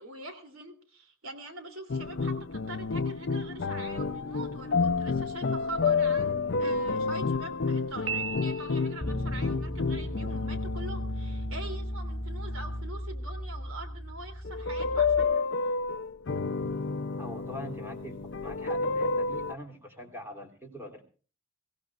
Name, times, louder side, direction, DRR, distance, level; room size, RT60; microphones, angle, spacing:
voice 1, 0.0-15.7, right 2 dB, 80° right, 8 dB, 3.0 m, -44 dB
sound 1, 1.9-12.9 14.4-19.5, left 4 dB, 60° left, 0.6 m, -30 dB
Piano, 8.1-9.2, right 8 dB, 60° right, 0.7 m, -36 dB
Bass guitar, 9.0-15.2, equal, 10° left, 3.4 m, -36 dB
voice 2, 17.2-21.0, equal, 10° right, 2 dB, 3.0 m, -43 dB
23.5 x 16.0 x 2.4 m, 0.39 s
head